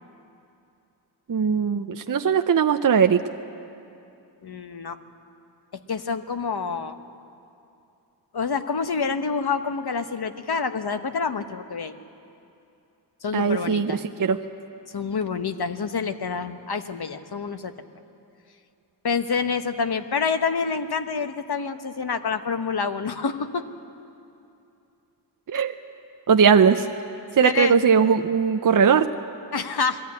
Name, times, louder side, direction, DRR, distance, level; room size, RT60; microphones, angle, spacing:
voice 1, 1.3-3.2 13.3-14.4 25.5-25.8 26.3-26.9 27.4-29.1, right 6 dB, 50° right, 6 dB, 0.6 m, -19 dB
voice 2, 4.4-5.0 5.9-7.0 8.3-11.9 13.2-14.0 14.9-17.7 19.0-23.6 27.4-27.8 29.5-30.0, left 5 dB, 60° left, 9 dB, 1.0 m, -27 dB
20.0 x 14.0 x 9.5 m, 2.7 s
wide cardioid pair, 75°, 43 cm